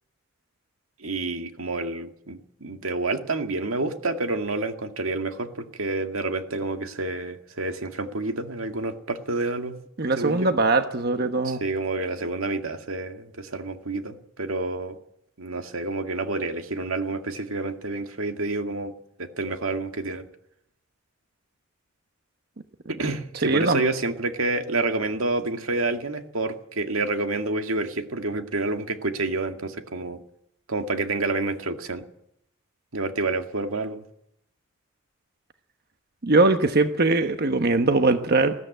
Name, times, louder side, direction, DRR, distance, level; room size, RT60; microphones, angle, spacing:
voice 1, 1.0-9.8 10.2-10.5 11.4-15.0 15.4-18.9 19.2-20.3 22.9-30.2 30.7-32.0 32.9-34.0, right 2 dB, 85° right, 6 dB, 2.0 m, -28 dB
voice 2, 10.0-11.6 23.4-23.8 36.2-38.5, right 3 dB, 50° right, 7 dB, 1.1 m, -21 dB
20.5 x 15.0 x 9.1 m, 0.75 s
head